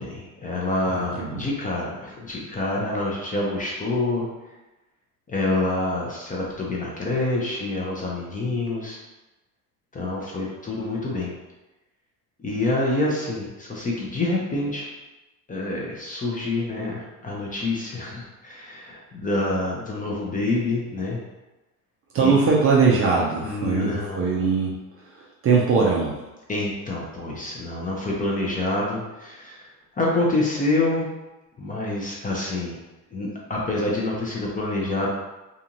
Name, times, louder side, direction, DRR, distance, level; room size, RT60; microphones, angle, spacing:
voice 1, 0.0-4.3 5.3-9.0 9.9-11.3 12.4-14.9 15.5-21.2 22.2-22.4 23.4-24.4 26.5-31.1 31.6-32.8 33.1-35.1, left 2 dB, 15° left, -3 dB, 0.5 m, -27 dB
voice 2, 0.9-1.5 22.1-26.2, right 4 dB, 30° right, -3 dB, 0.5 m, -21 dB
2.5 x 2.5 x 2.8 m, 1.0 s
hypercardioid pair, 85°, 49 cm